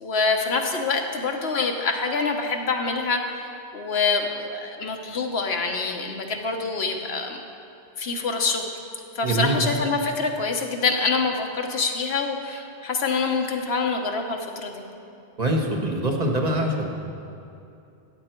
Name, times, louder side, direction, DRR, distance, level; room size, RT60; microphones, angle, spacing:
voice 1, 0.0-7.4 8.0-8.7 9.1-14.8, left 4 dB, 80° left, 3 dB, 1.3 m, -26 dB
voice 2, 9.2-9.7 15.4-16.9, right 1 dB, 40° right, 1 dB, 1.3 m, -24 dB
15.0 x 8.8 x 4.4 m, 2.7 s
omnidirectional pair, 1.0 m